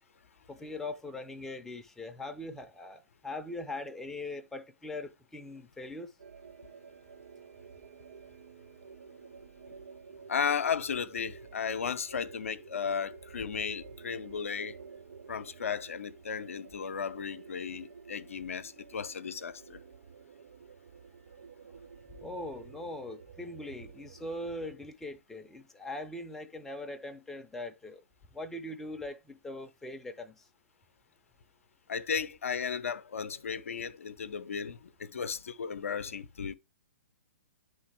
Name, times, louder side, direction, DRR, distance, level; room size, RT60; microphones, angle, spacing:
voice 1, 0.5-6.1 22.2-28.0 28.3-30.4, left 2 dB, 5° left, 0.6 m, -41 dB
sound 1, 6.2-24.8, right 5 dB, 60° right, 0.4 m, -51 dB
voice 2, 10.3-14.8 15.3-19.8 31.9-36.5, left 6 dB, 75° left, 0.5 m, -35 dB
9.5 x 3.3 x 3.4 m
figure-of-eight pair, 120°, 7 cm